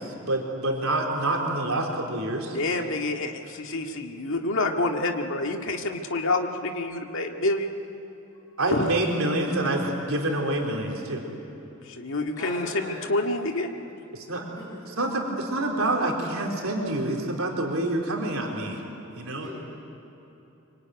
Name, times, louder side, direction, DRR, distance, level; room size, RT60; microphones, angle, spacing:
voice 1, 0.0-2.6 8.6-11.2 14.1-14.4 15.0-18.8 19.1-19.5, right 2 dB, 80° right, 0 dB, 4.0 m, -27 dB
voice 2, 2.5-7.7 8.7-9.0 11.8-13.7, left 2 dB, 65° left, 3 dB, 2.0 m, -28 dB
voice 3, 12.3-13.1 14.6-14.9 19.3-19.5, left 1 dB, 20° left, -5 dB, 8.0 m, -40 dB
25.5 x 24.5 x 9.5 m, 3.0 s
head